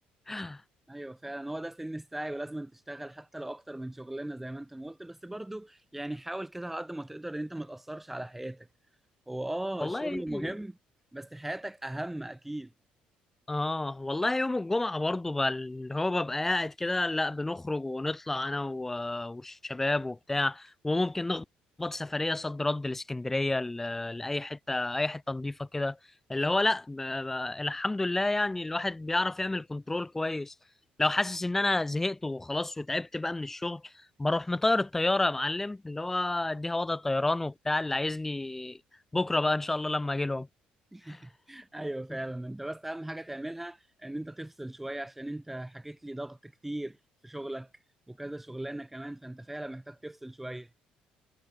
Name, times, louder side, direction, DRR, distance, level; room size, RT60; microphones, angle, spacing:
voice 1, 0.3-0.6 9.8-10.5 13.5-21.4 21.8-26.0 26.3-30.5 31.0-33.8 34.2-38.8 39.1-40.5 41.1-41.2, left 2 dB, 10° left, 3.9 m, -30 dB
voice 2, 0.9-8.7 9.3-10.8 11.1-12.7 40.9-47.0 47.2-47.7 48.1-50.7, right 1 dB, 5° right, 3.8 m, -38 dB
cardioid pair, 125°, 3 cm